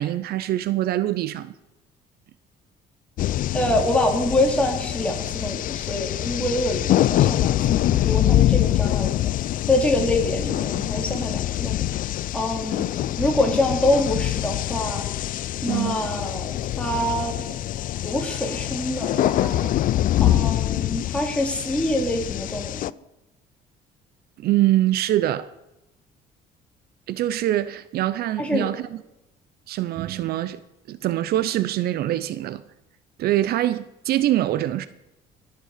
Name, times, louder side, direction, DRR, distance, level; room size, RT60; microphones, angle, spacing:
voice 1, 0.0-1.5 15.7-16.0 24.4-25.5 27.1-29.0 29.7-30.6 30.9-32.6 33.2-34.9, right 14 dB, 65° right, 0.6 m, -24 dB
sound 1, 3.2-22.9, left 13 dB, 55° left, 0.4 m, -24 dB
voice 2, 3.5-9.3 9.7-11.8 12.3-15.0 15.6-17.6 18.0-19.7 20.2-22.9 28.4-28.6, left 1 dB, 5° left, 3.1 m, -25 dB
17.5 x 6.9 x 6.5 m
cardioid pair, 110°, 17 cm